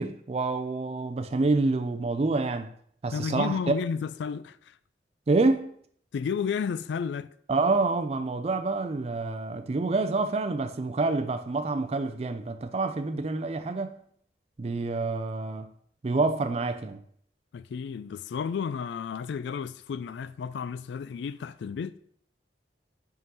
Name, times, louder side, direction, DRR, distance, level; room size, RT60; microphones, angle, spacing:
voice 1, 0.0-2.7 3.0-3.7 5.3-5.8 7.5-14.0 14.6-15.7 16.0-17.0, right 3 dB, 35° right, 0.4 m, -27 dB
voice 2, 3.1-4.7 6.1-7.3 17.5-22.0, left 6 dB, 80° left, 0.3 m, -32 dB
5.4 x 3.8 x 5.4 m
head